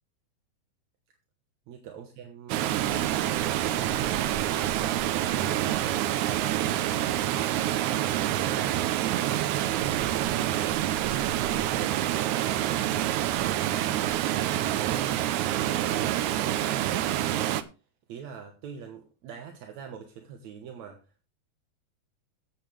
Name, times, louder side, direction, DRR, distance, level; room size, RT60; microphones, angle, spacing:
voice 1, 1.7-4.6 5.0-7.2 7.8-11.1 11.7-13.5 14.8-17.5 18.1-21.2, right 8 dB, 60° right, 4 dB, 2.1 m, -43 dB
Water, 2.5-17.6, right 12 dB, 85° right, 1.7 m, -27 dB
15.5 x 9.0 x 3.3 m, 0.31 s
omnidirectional pair, 4.3 m